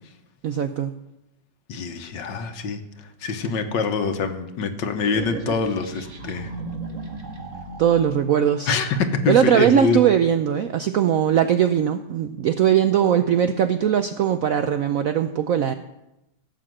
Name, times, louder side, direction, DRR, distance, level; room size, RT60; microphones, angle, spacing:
voice 1, 0.4-0.9 7.8-8.8 9.3-15.7, right 9 dB, 75° right, 9 dB, 0.8 m, -20 dB
voice 2, 1.7-2.8 3.2-6.5 8.7-10.0, left 4 dB, 70° left, 8 dB, 1.7 m, -25 dB
sound 1, 5.1-8.1, right 3 dB, 45° right, 1.7 m, -35 dB
16.5 x 6.6 x 7.6 m, 0.90 s
omnidirectional pair, 2.1 m